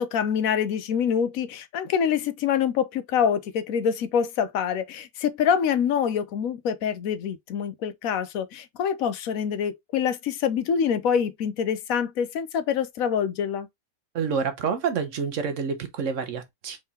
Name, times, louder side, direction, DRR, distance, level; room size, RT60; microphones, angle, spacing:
voice 1, 0.0-13.7, left 8 dB, 75° left, 1.1 m, -25 dB
voice 2, 14.1-16.8, right 6 dB, 60° right, 1.2 m, -28 dB
4.6 x 3.6 x 2.8 m
omnidirectional pair, 1.5 m